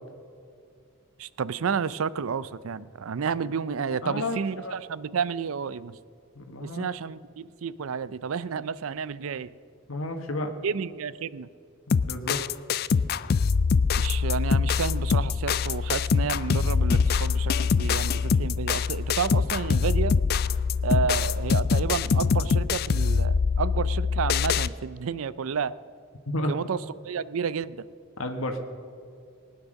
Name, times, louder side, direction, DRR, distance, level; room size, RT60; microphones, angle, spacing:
voice 1, 1.2-6.0 6.6-9.5 10.6-11.5 14.0-20.2 20.8-25.7 26.5-26.8 27.0-27.9, right 6 dB, 85° right, 18 dB, 0.5 m, -31 dB
voice 2, 4.0-4.7 6.3-6.9 9.9-10.6 12.1-12.4 26.3-26.6 28.2-28.6, left 1 dB, 85° left, 5 dB, 1.4 m, -31 dB
sound 1, 11.9-24.7, left 5 dB, 45° left, 0.3 m, -24 dB
19.5 x 9.7 x 6.3 m, 2.3 s
head